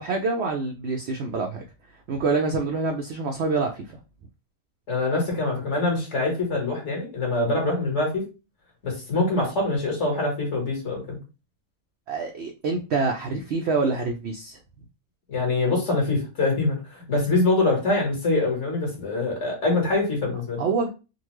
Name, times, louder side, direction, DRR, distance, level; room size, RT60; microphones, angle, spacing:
voice 1, 0.0-1.6 2.1-4.0 12.1-14.6 20.6-20.9, right 4 dB, 80° right, 3 dB, 0.5 m, -26 dB
voice 2, 4.9-8.2 8.8-11.2 15.3-20.6, left 2 dB, 50° left, -1 dB, 1.7 m, -24 dB
3.7 x 2.2 x 3.0 m, 0.30 s
omnidirectional pair, 1.7 m